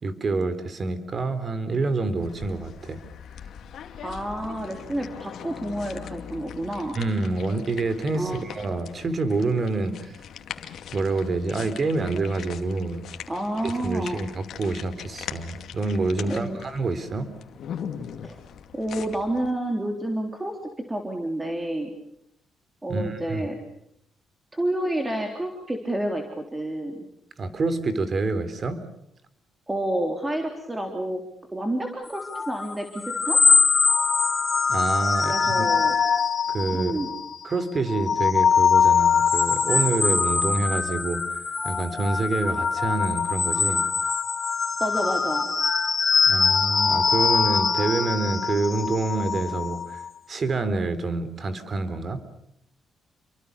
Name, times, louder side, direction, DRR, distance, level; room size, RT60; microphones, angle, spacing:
voice 1, 0.0-3.0 7.0-10.2 10.9-13.0 13.6-17.3 22.9-23.5 27.4-28.8 34.7-35.7 36.5-36.9 37.4-41.2 41.6-43.9 46.3-50.0 50.3-52.2, right 3 dB, 40° right, 12 dB, 3.7 m, -27 dB
sound 1, 2.2-19.5, left 8 dB, 70° left, 2.4 m, -41 dB
voice 2, 4.0-7.0 8.1-8.5 13.3-14.2 16.3-16.6 18.2-18.4 18.7-20.6 20.9-21.9 22.8-23.6 24.5-27.1 29.7-31.2 31.5-33.4 35.2-36.0 36.7-37.1 44.8-45.5, right 1 dB, 15° right, 3 dB, 3.7 m, -29 dB
sound 2, 32.1-37.3 37.8-50.1, left 5 dB, 35° left, 2.3 m, -23 dB
29.5 x 23.5 x 6.8 m, 0.76 s
cardioid pair, 90°, 0 cm